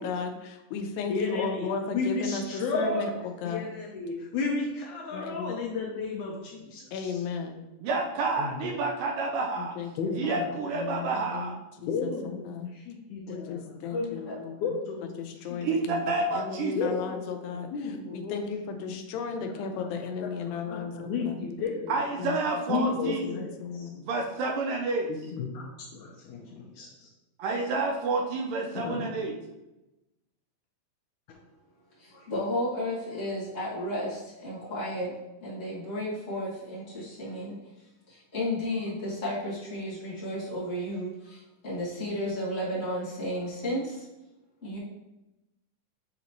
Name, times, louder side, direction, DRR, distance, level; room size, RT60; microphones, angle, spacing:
voice 1, 0.0-3.1 3.4-3.7 5.1-5.5 6.9-7.6 9.6-11.6 11.8-12.1 12.5-12.7 13.3-14.5 15.2-17.7 18.1-21.4 22.2-22.4 22.7-24.0, left 6 dB, 90° left, 5 dB, 2.3 m, -35 dB
voice 2, 1.1-1.7 1.9-3.1 3.4-7.2 8.4-8.7 10.0-10.5 11.9-13.9 14.6-15.9 16.8-19.0 19.5-19.9 20.2-22.3 22.7-23.5 23.7-23.9 25.1-27.1 28.8-29.1, left 4 dB, 75° left, -1 dB, 2.0 m, -33 dB
voice 3, 7.8-9.8 10.2-11.6 15.6-16.8 21.9-23.4 24.1-25.1 27.4-29.3, right 3 dB, 75° right, 1 dB, 2.2 m, -29 dB
voice 4, 13.9-14.6 32.0-35.1 35.4-37.6 38.1-44.1 44.6-44.8, left 1 dB, 35° left, -8 dB, 1.3 m, -33 dB
8.4 x 4.0 x 3.0 m, 0.99 s
omnidirectional pair, 4.1 m